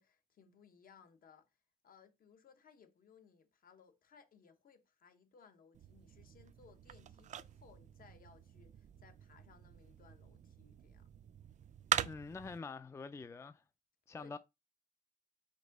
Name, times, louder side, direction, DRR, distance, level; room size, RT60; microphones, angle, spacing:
voice 1, 0.0-1.6 1.8-11.1 14.2-14.4, left 6 dB, 65° left, 1.1 m, -63 dB
sound 1, 5.7-12.6, right 9 dB, 50° right, 0.4 m, -43 dB
voice 2, 12.1-13.6 14.1-14.4, left 4 dB, 15° left, 0.4 m, -46 dB
5.2 x 3.6 x 5.3 m
cardioid pair, 120°, 16 cm